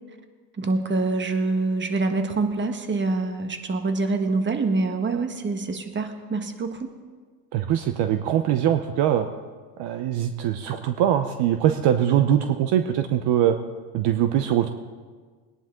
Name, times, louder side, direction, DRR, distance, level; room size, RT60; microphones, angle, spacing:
voice 1, 0.6-6.9, right 3 dB, 25° right, 7 dB, 1.5 m, -25 dB
voice 2, 7.5-9.3 9.8-13.6 13.9-14.7, right 10 dB, 55° right, 9 dB, 0.9 m, -22 dB
21.0 x 10.5 x 3.8 m, 1.5 s
supercardioid pair, 90°, 48 cm